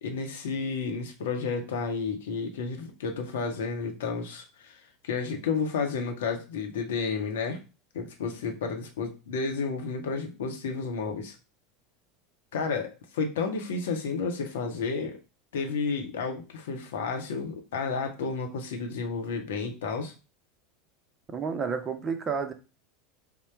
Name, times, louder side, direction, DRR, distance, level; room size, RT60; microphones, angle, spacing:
voice 1, 0.0-4.8 5.0-7.6 7.9-11.3 12.5-15.2 15.5-20.1, left 4 dB, 70° left, 3 dB, 0.8 m, -31 dB
voice 2, 21.3-22.5, right 5 dB, 30° right, 7 dB, 0.7 m, -30 dB
3.7 x 2.2 x 4.4 m, 0.30 s
figure-of-eight pair, 80°, 0 cm